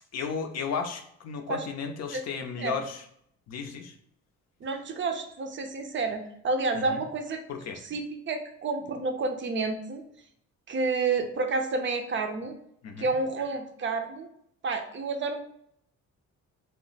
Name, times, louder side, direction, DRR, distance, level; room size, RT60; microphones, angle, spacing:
voice 1, 0.1-3.1 3.5-3.9 6.7-7.0 7.5-7.8 12.8-13.1, left 6 dB, 60° left, 5 dB, 0.5 m, -34 dB
voice 2, 4.6-7.4 7.8-8.0 8.3-10.0 10.7-12.5 13.0-14.3 14.6-15.4, right 3 dB, 40° right, 5 dB, 0.4 m, -30 dB
2.2 x 2.0 x 3.8 m, 0.70 s
cardioid pair, 90°, 30 cm